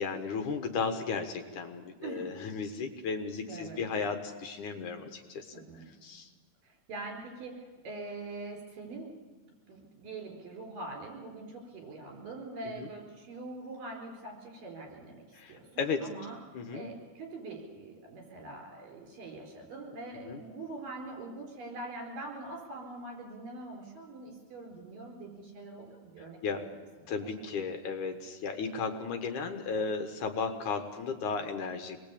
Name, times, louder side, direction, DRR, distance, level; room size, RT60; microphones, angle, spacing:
voice 1, 0.0-5.5 6.0-6.3 12.6-12.9 15.3-16.1 16.5-16.9 20.2-20.4 26.2-26.6 27.1-32.0, left 5 dB, 65° left, 7 dB, 2.6 m, -35 dB
voice 2, 2.0-2.4 3.5-3.8 5.5-6.0 6.6-9.1 9.7-16.4 16.7-26.8 27.2-27.3, right 2 dB, 65° right, 1 dB, 6.5 m, -43 dB
26.5 x 20.5 x 8.6 m, 1.4 s
omnidirectional pair, 4.2 m